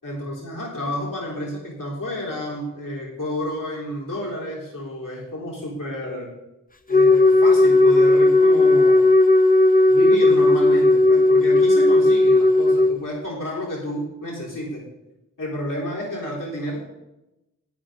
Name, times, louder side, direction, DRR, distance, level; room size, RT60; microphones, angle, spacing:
voice 1, 0.0-6.3 6.9-9.0 9.9-14.9 15.4-16.8, left 1 dB, 75° left, -4 dB, 3.8 m, -30 dB
Wind instrument woodwind instrument, 6.9-13.0, left 2 dB, 25° left, 0.8 m, -15 dB
12.0 x 10.5 x 3.9 m, 0.95 s
wide cardioid pair, 65°, 33 cm